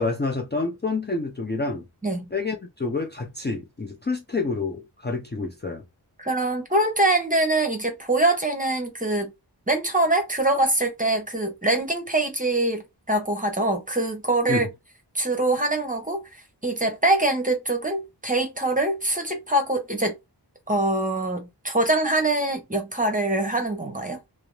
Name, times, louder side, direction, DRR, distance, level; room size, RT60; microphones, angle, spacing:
voice 1, 0.0-1.9 2.3-5.8 14.5-14.6, left 3 dB, 25° left, 0.5 m, -28 dB
voice 2, 6.2-9.3 9.7-14.7 15.1-20.2 20.7-24.2, right 2 dB, 20° right, 0.8 m, -24 dB
2.5 x 2.0 x 3.0 m
wide cardioid pair, 45°, 42 cm